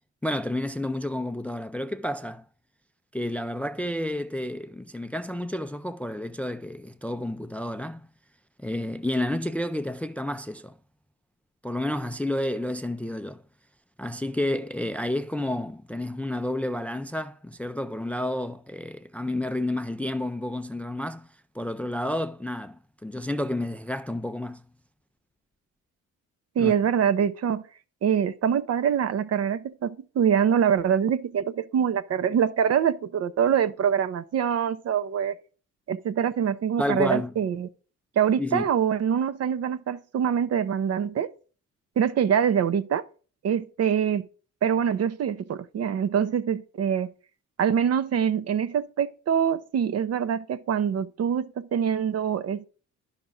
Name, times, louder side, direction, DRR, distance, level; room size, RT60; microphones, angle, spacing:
voice 1, 0.2-2.4 3.1-8.1 8.6-10.8 11.6-13.4 14.0-21.3 21.5-24.6 26.6-26.7 36.8-37.3 38.4-38.7, left 1 dB, 5° left, 0.4 m, -30 dB
voice 2, 26.6-27.6 28.0-35.3 35.9-37.7 38.2-41.3 42.0-43.1 43.4-44.3 44.6-47.1 47.6-52.7, right 8 dB, 55° right, 0.7 m, -24 dB
11.0 x 5.8 x 3.8 m
cardioid pair, 90°, 30 cm